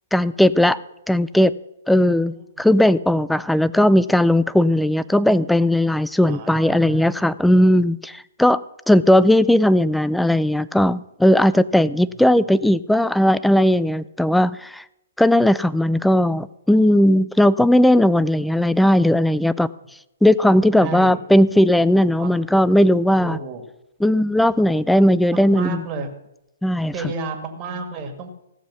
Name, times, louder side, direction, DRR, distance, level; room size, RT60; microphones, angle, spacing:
voice 1, 0.1-0.8 1.1-1.5 1.9-8.6 8.9-14.8 15.2-19.7 20.2-23.4 24.0-25.8 26.6-26.9, left 1 dB, ahead, 17 dB, 0.3 m, -17 dB
voice 2, 1.9-2.4 6.2-7.2 20.8-21.2 22.2-22.5 23.2-23.7 25.3-26.1 26.9-28.3, right 3 dB, 30° right, 5 dB, 1.8 m, -32 dB
15.5 x 7.2 x 6.2 m, 0.88 s
figure-of-eight pair, 125°, 0 cm